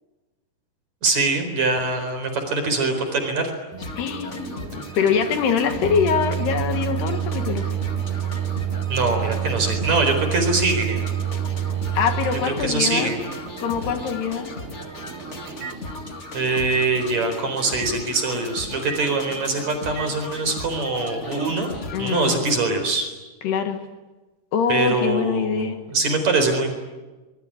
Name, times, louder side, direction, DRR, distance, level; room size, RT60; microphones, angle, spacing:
voice 1, 1.0-3.5 8.9-11.0 12.6-13.2 16.3-21.7 22.0-23.1 24.7-26.7, right 3 dB, 40° right, 6 dB, 5.3 m, -23 dB
Microwave oven, 3.7-16.3 16.7-16.9 17.8-18.0 18.9-19.0 20.0-20.1, right 11 dB, 70° right, 2.5 m, -29 dB
sound 1, 3.8-22.5, left 2 dB, 55° left, 0.7 m, -36 dB
voice 2, 4.0-7.7 12.0-13.2 13.6-14.5 21.9-22.4 23.4-23.8 24.5-25.8, left 6 dB, 70° left, 6 dB, 3.8 m, -24 dB
25.0 x 21.5 x 10.0 m, 1.2 s
omnidirectional pair, 5.0 m